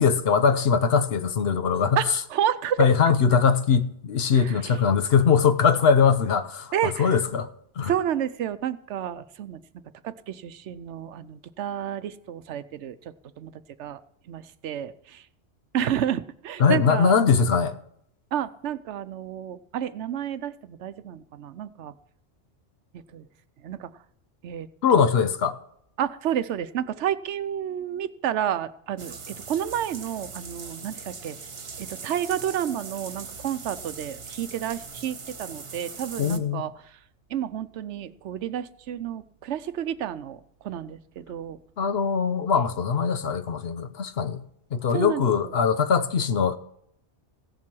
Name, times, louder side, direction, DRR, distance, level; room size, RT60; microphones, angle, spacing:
voice 1, 0.0-2.0 2.8-6.7 7.0-7.5 7.8-7.9 16.6-17.7 24.8-25.6 36.2-36.6 41.8-44.4 44.7-46.6, left 6 dB, 65° left, 0.9 m, -21 dB
voice 2, 2.0-2.9 4.3-4.8 6.7-7.2 7.9-9.6 10.0-13.0 13.4-13.5 13.8-14.0 14.3-15.2 15.7-17.2 18.3-21.9 23.1-23.3 23.6-23.9 24.4-25.1 26.0-31.4 31.8-36.7 37.3-40.4 40.6-41.6 44.9-45.5, right 10 dB, 80° right, 0.9 m, -30 dB
sound 1, 29.0-36.4, right 5 dB, 60° right, 1.4 m, -40 dB
16.0 x 7.4 x 6.1 m
omnidirectional pair, 1.2 m